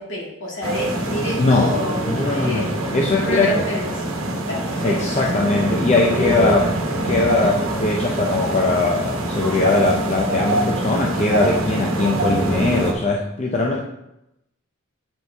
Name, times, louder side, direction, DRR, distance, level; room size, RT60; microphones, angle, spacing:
voice 1, 0.0-2.7 3.2-3.9 4.5-5.0, left 1 dB, 60° left, -4 dB, 2.2 m, -28 dB
sound 1, 0.6-12.9, right 1 dB, 85° right, 1.0 m, -24 dB
voice 2, 1.3-1.7 2.1-3.7 4.8-13.8, left 2 dB, 35° left, -1 dB, 0.5 m, -20 dB
7.7 x 4.8 x 3.4 m, 0.85 s
head